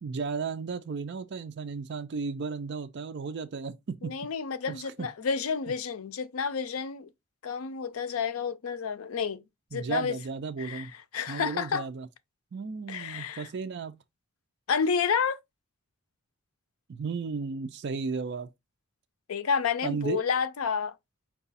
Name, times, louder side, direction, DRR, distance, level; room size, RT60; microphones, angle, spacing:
voice 1, 0.0-4.1 4.7-5.1 9.7-10.9 11.3-12.1 12.5-14.0 16.9-18.5 19.8-20.2, right 5 dB, 55° right, 0.4 m, -34 dB
voice 2, 4.0-7.1 7.4-9.4 9.7-10.2 10.6-10.9 11.1-11.8 12.9-13.5 14.7-15.4 19.3-20.9, left 6 dB, 85° left, 0.5 m, -30 dB
4.7 x 2.3 x 4.0 m
head